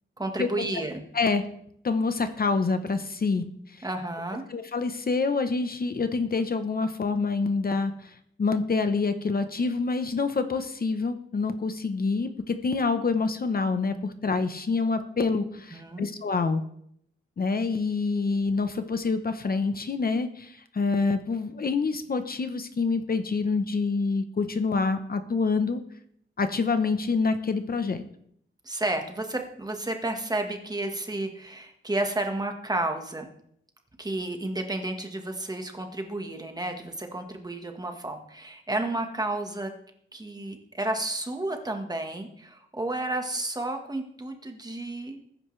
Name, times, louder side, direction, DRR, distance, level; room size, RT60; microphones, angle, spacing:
voice 1, 0.2-1.0 3.8-4.4 15.7-16.1 28.6-33.3 34.0-39.7 40.1-45.2, right 2 dB, 20° right, 4 dB, 1.4 m, -31 dB
voice 2, 1.1-1.5 1.8-3.4 3.7-3.9 4.5-16.6 17.4-25.8 26.4-28.0, left 4 dB, 45° left, 8 dB, 0.9 m, -27 dB
20.0 x 10.0 x 3.3 m, 0.67 s
wide cardioid pair, 180°, 21 cm